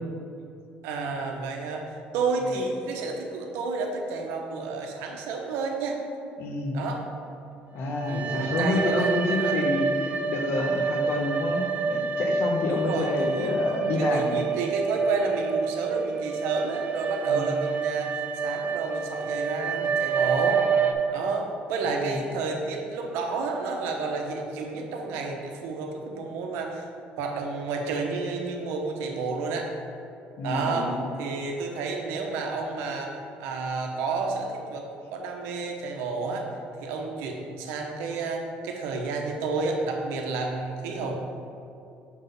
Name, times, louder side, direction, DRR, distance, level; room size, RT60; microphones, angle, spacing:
voice 1, 0.8-1.8 2.1-6.0 6.7-7.0 8.1-9.5 12.7-13.5 13.9-18.1 18.4-20.6 21.1-26.8 27.2-29.7 30.4-36.5 36.8-41.1, right 4 dB, 80° right, 1 dB, 0.9 m, -30 dB
voice 2, 6.4-6.8 7.7-14.4 17.3-17.5 21.9-22.2 30.4-31.0, left 2 dB, 65° left, 2 dB, 1.0 m, -28 dB
sound 1, 7.9-20.9, right 4 dB, 40° right, 0.6 m, -28 dB
6.3 x 3.7 x 5.3 m, 2.6 s
supercardioid pair, 80°, 4 cm